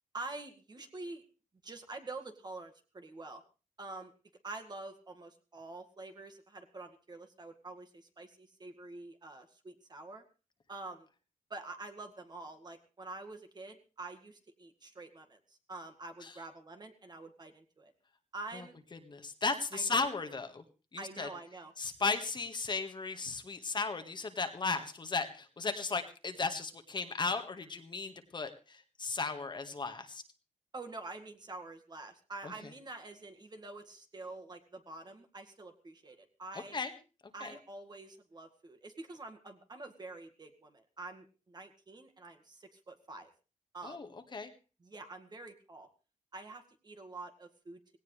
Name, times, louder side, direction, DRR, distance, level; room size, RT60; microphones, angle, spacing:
voice 1, 0.1-1.2 1.6-3.4 3.8-4.1 4.4-10.2 10.7-11.1 11.5-15.4 15.7-17.9 18.3-18.8 19.7-20.0 21.0-21.7 30.7-36.8 37.3-43.3 43.7-44.0 44.8-45.9 46.3-48.0, right 2 dB, 35° right, 6 dB, 2.0 m, -47 dB
voice 2, 18.9-20.6 20.9-21.3 21.8-30.2 32.4-32.5 36.7-36.9 37.4-37.5 43.8-44.5, left 4 dB, 35° left, 7 dB, 1.6 m, -35 dB
18.0 x 17.5 x 3.3 m, 0.34 s
cardioid pair, 115°, 13 cm